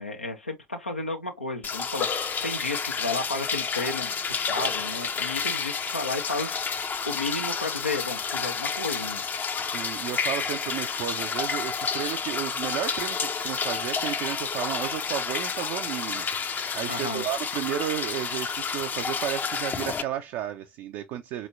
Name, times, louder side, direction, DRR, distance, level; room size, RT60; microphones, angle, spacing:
voice 1, 0.0-6.6 7.1-9.2 16.9-17.2, left 3 dB, 85° left, 0.5 m, -32 dB
sound 1, 1.6-20.0, left 6 dB, 30° left, 0.5 m, -30 dB
voice 2, 9.6-21.5, right 11 dB, 55° right, 0.4 m, -33 dB
4.1 x 3.1 x 2.4 m
figure-of-eight pair, 55°, 6 cm